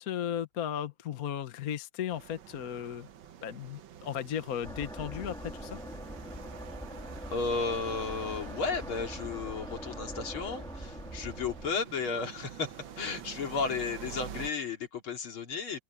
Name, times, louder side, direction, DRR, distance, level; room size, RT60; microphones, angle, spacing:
voice 1, 0.0-3.1 3.4-5.8, left 9 dB, 50° left, 1.4 m, -35 dB
sound 1, 2.1-14.5, right 9 dB, 65° right, 1.8 m, -47 dB
sound 2, 4.6-11.7, equal, ahead, 1.3 m, -42 dB
voice 2, 7.3-15.8, left 4 dB, 80° left, 3.6 m, -34 dB
open air
omnidirectional pair, 2.3 m